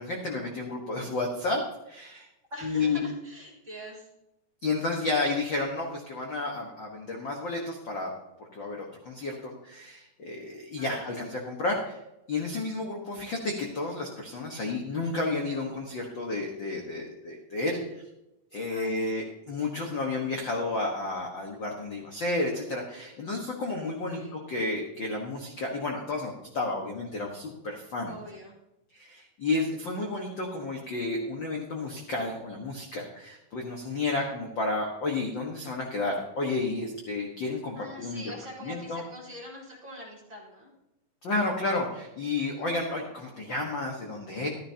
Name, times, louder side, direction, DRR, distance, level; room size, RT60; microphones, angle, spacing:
voice 1, 0.0-1.6 1.9-2.3 2.6-3.0 4.6-8.1 8.5-12.0 12.3-18.0 18.5-28.1 28.9-38.2 38.6-39.0 41.2-44.5, left 2 dB, 50° left, 0 dB, 1.5 m, -31 dB
voice 2, 2.5-4.1 10.8-11.1 18.7-19.2 24.1-24.4 28.1-28.6 34.1-34.4 37.7-40.7, equal, 20° right, -3 dB, 3.3 m, -44 dB
14.0 x 13.0 x 2.9 m, 0.90 s
omnidirectional pair, 4.0 m